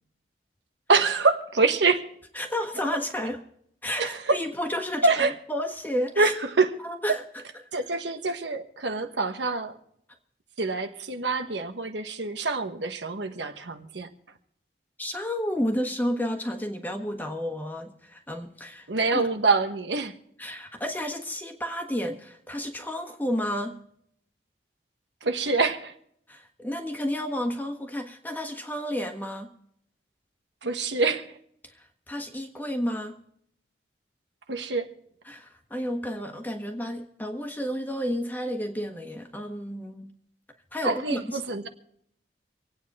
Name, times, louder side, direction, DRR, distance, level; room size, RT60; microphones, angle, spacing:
voice 1, 0.9-2.0 4.0-4.4 5.0-5.3 6.2-6.7 7.7-9.7 10.6-14.1 18.9-20.1 25.2-25.9 30.6-31.2 34.5-34.9 40.8-41.7, right 3 dB, 80° right, 7 dB, 1.3 m, -25 dB
voice 2, 2.3-3.4 3.8-6.3 6.8-7.4 15.0-19.3 20.4-23.8 26.3-29.5 31.6-33.2 35.2-40.1 40.7-41.4, equal, 10° left, 4 dB, 1.4 m, -31 dB
26.5 x 9.0 x 4.2 m, 0.69 s
head